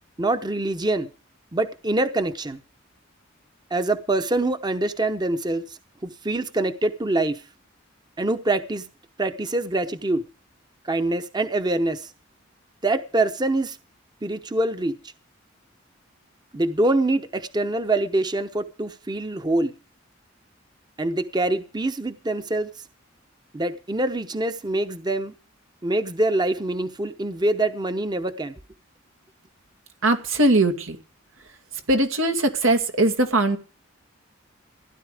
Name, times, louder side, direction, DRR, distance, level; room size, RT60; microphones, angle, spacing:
voice 1, 0.2-1.1 1.5-2.6 3.7-7.4 8.2-8.8 9.2-10.2 10.8-12.1 12.8-13.8 14.2-14.9 16.5-19.7 21.0-22.7 23.5-25.3 25.8-28.6, right 2 dB, 20° right, 10 dB, 0.8 m, -25 dB
voice 2, 30.0-31.0 31.9-33.6, right 2 dB, 90° right, 7 dB, 2.3 m, -20 dB
16.0 x 11.0 x 5.0 m, 0.34 s
head